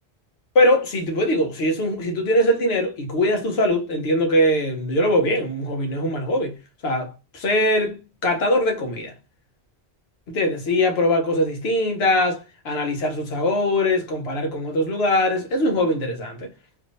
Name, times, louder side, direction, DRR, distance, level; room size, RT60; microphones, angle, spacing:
voice 1, 0.5-6.6 6.8-9.1 10.3-16.5, left 1 dB, 65° left, 1.1 m, -22 dB
3.4 x 2.8 x 2.5 m
omnidirectional pair, 1.2 m